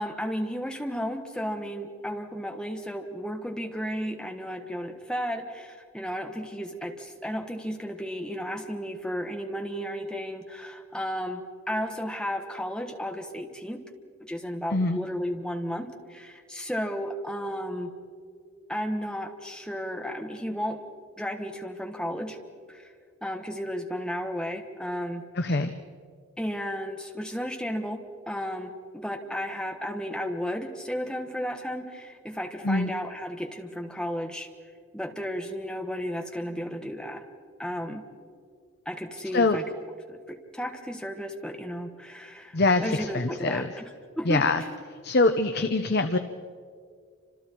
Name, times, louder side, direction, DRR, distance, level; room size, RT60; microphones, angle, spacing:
voice 1, 0.0-13.8 14.2-17.9 18.7-20.8 21.2-22.4 22.7-22.8 23.2-25.2 26.4-34.5 34.9-37.2 37.6-38.0 38.8-39.6 40.1-43.9 44.2-44.4, equal, 5° left, 3 dB, 1.4 m, -33 dB
voice 2, 25.4-25.7 32.6-32.9 39.3-39.6 42.5-43.7 44.3-44.6 45.0-46.2, left 3 dB, 50° left, 8 dB, 0.8 m, -24 dB
28.5 x 26.0 x 4.6 m, 2.1 s
head